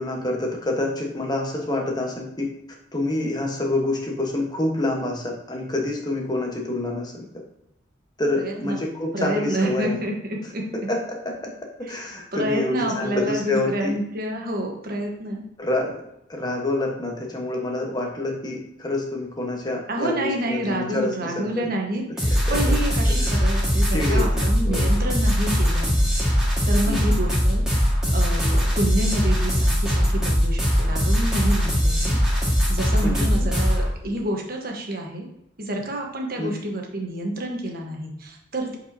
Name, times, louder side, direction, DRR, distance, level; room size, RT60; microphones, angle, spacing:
voice 1, 0.0-2.5 2.9-7.2 8.2-10.0 10.9-11.0 11.9-14.0 15.6-15.9 16.3-21.7 22.5-22.6 23.1-23.5 23.9-24.9 26.9-27.2 33.0-33.3 36.4-36.5, left 2 dB, 20° left, 0 dB, 1.2 m, -27 dB
voice 2, 8.4-8.8 9.1-10.9 11.9-15.4 19.9-26.1 26.7-27.7 28.1-35.3 35.6-38.8, right 1 dB, 50° right, 1 dB, 1.2 m, -28 dB
sound 1, 22.2-33.9, equal, 5° right, 1.8 m, -21 dB
7.8 x 4.7 x 2.8 m, 0.82 s
head